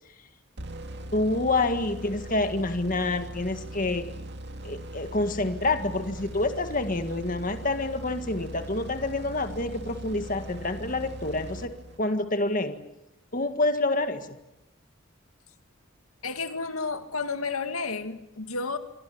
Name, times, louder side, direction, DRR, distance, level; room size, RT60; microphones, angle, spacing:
sound 1, 0.6-12.2, right 1 dB, 55° right, 2.4 m, -40 dB
voice 1, 1.1-4.1 4.6-12.8 13.3-14.4, left 2 dB, 40° left, 8 dB, 1.9 m, -27 dB
voice 2, 16.2-18.8, left 4 dB, 90° left, 8 dB, 2.4 m, -31 dB
27.0 x 24.0 x 8.8 m, 0.91 s
head